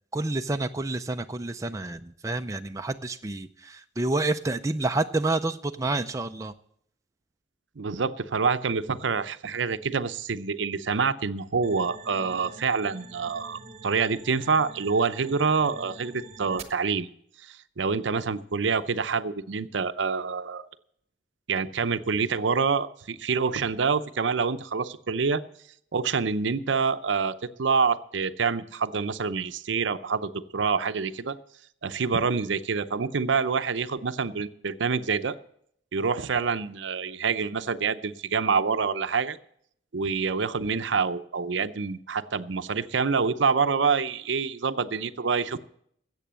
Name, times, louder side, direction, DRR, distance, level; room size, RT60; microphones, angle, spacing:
voice 1, 0.1-6.5, right 2 dB, 15° right, 7 dB, 0.5 m, -29 dB
voice 2, 7.8-17.1 17.4-20.7 21.5-25.4 25.9-27.3 27.6-31.4 31.8-35.4 35.9-39.4 39.9-45.6, right 5 dB, 75° right, 12 dB, 0.6 m, -26 dB
sound 1, 11.6-16.6, right 4 dB, 35° right, 1.1 m, -46 dB
14.0 x 8.3 x 7.5 m, 0.69 s
head